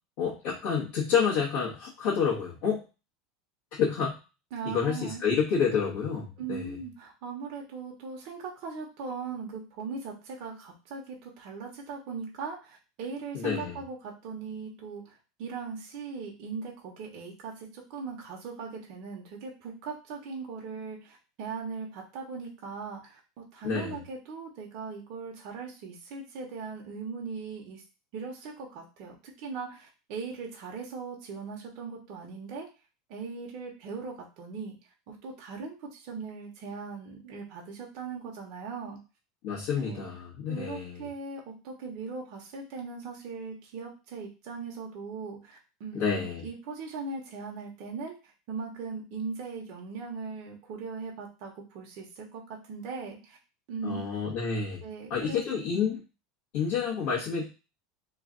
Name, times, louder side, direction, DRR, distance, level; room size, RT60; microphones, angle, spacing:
voice 1, 0.2-2.8 3.7-4.1 4.6-6.7 13.3-13.7 23.6-24.0 39.4-41.1 45.9-46.4 53.8-54.8 55.1-56.0 56.5-57.4, left 6 dB, 60° left, -7 dB, 1.1 m, -29 dB
voice 2, 4.5-5.2 6.4-27.8 28.1-32.7 33.1-34.7 35.1-39.0 39.8-40.1 40.5-53.4 53.7-54.0 54.8-55.4, right 4 dB, 55° right, -1 dB, 1.0 m, -39 dB
3.1 x 2.4 x 3.8 m, 0.31 s
supercardioid pair, 140°, 0 cm